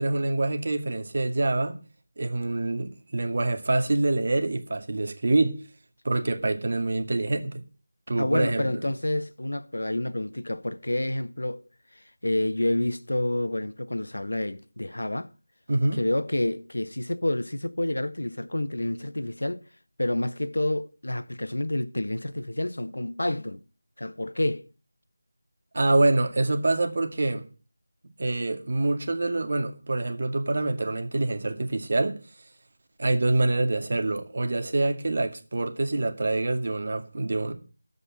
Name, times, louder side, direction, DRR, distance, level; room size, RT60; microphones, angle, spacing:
voice 1, 0.0-1.8 2.2-5.6 6.0-7.6 8.1-8.7 15.7-16.0 25.7-27.4 28.2-32.2 33.0-37.5, right 2 dB, 50° right, 2.2 m, -25 dB
voice 2, 8.1-11.6 11.9-15.3 15.9-19.6 20.0-23.6 24.0-24.7, left 1 dB, 85° left, 1.0 m, -28 dB
13.5 x 5.4 x 8.8 m
figure-of-eight pair, 170°, 0 cm